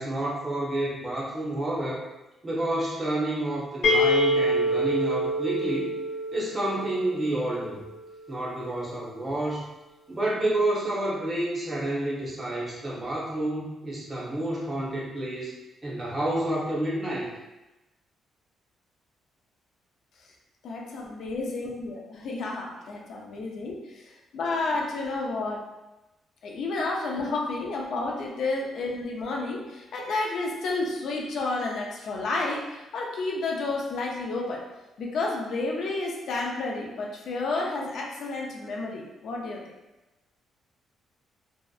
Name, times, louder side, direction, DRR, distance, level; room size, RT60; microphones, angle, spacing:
voice 1, 0.0-2.0 2.4-5.9 6.3-7.8 8.3-9.7 10.1-15.6 15.8-17.3, right 1 dB, 20° right, -5 dB, 0.7 m, -29 dB
sound 1, 3.8-7.6, equal, 85° left, 0.7 m, -26 dB
voice 2, 20.6-25.6 26.4-34.6 35.0-39.7, left 3 dB, 60° left, -1 dB, 0.4 m, -31 dB
2.6 x 2.1 x 2.3 m, 1.0 s
cardioid pair, 135°, 0 cm